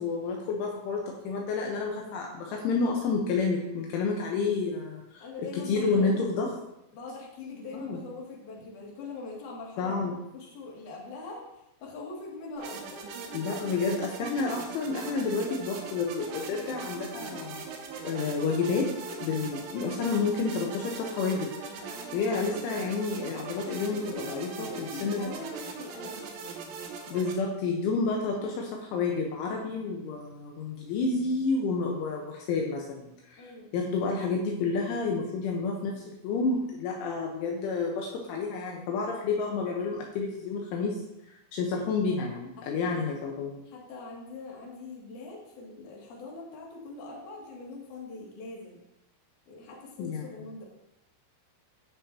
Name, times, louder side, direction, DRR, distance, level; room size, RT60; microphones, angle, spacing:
voice 1, 0.0-5.2 5.7-6.5 7.7-8.0 9.8-10.2 13.3-17.6 18.0-18.9 19.2-21.5 22.1-25.3 27.1-41.0 41.5-43.6 50.0-50.3, left 4 dB, 75° left, 0 dB, 3.3 m, -30 dB
voice 2, 5.2-6.1 6.9-10.1 10.3-13.0 21.9-22.3 24.1-26.9 28.4-28.7 33.4-34.1 42.6-43.2 43.6-48.8 49.5-50.6, left 3 dB, 45° left, -4 dB, 3.0 m, -43 dB
sound 1, 12.6-27.3, right 4 dB, 75° right, 3.4 m, -40 dB
16.5 x 6.4 x 2.8 m, 0.87 s
omnidirectional pair, 5.9 m